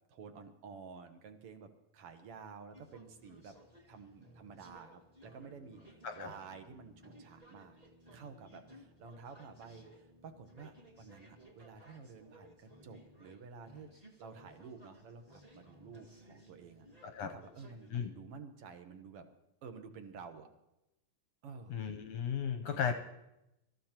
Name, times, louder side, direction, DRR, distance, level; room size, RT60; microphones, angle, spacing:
voice 1, 0.1-3.6 3.9-7.8 8.1-16.9 17.2-19.3 19.6-20.5 21.4-21.8 22.6-22.9, right 5 dB, 60° right, 7 dB, 1.6 m, -51 dB
sound 1, 2.7-17.9, right 1 dB, 15° right, 1.4 m, -59 dB
voice 2, 17.0-17.3 17.9-18.1 21.7-22.9, left 7 dB, 75° left, 6 dB, 1.6 m, -35 dB
24.5 x 14.0 x 2.9 m, 0.90 s
omnidirectional pair, 3.7 m